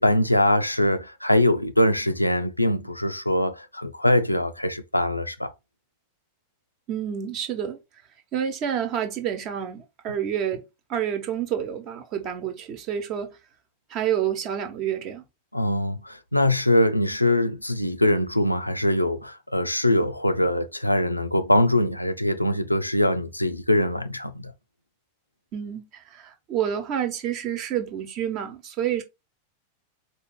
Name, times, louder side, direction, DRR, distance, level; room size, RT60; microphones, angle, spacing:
voice 1, 0.0-5.5 15.5-24.5, left 1 dB, 85° left, 0.4 m, -22 dB
voice 2, 6.9-7.8 8.3-13.4 13.9-15.2 25.5-29.0, right 9 dB, 40° right, 1.0 m, -29 dB
4.3 x 2.6 x 3.7 m
figure-of-eight pair, 90°, 0 cm